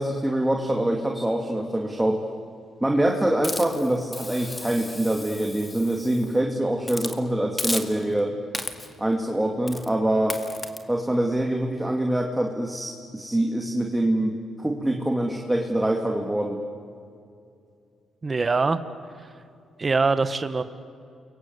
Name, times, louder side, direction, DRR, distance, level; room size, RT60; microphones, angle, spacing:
voice 1, 0.0-2.2 2.8-8.3 9.0-10.4 10.9-16.6, right 1 dB, 10° right, 2 dB, 2.5 m, -25 dB
Hiss, 3.4-6.3 6.8-7.2 7.6-8.2 8.5-9.0 9.7-9.9 10.3-10.8, left 2 dB, 20° left, 2.1 m, -34 dB
voice 2, 18.2-18.8 19.8-20.6, right 4 dB, 30° right, 11 dB, 1.3 m, -23 dB
29.0 x 23.5 x 8.1 m, 2.4 s
cardioid pair, 85°, 0 cm